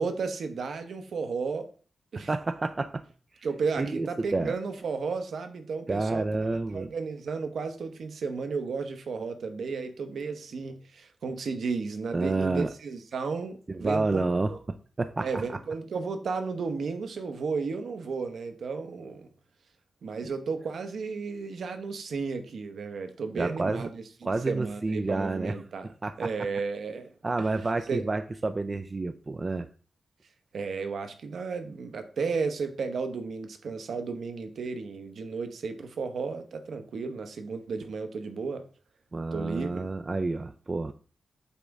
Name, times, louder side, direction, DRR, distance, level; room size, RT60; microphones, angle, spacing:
voice 1, 0.0-1.7 2.1-2.3 3.4-6.3 6.7-14.6 15.2-19.3 20.0-25.9 26.2-27.1 27.4-27.5 27.9-28.0 30.5-38.7 39.3-39.9, right 4 dB, 75° right, 7 dB, 1.1 m, -33 dB
voice 2, 2.1-3.0 3.8-4.5 5.9-6.9 12.1-12.7 13.7-15.4 20.2-20.3 23.4-23.9 24.2-25.6 26.0-26.3 27.2-29.7 39.1-40.9, right 3 dB, 30° right, 10 dB, 0.4 m, -29 dB
8.3 x 3.6 x 5.2 m, 0.39 s
wide cardioid pair, 120°, 0 cm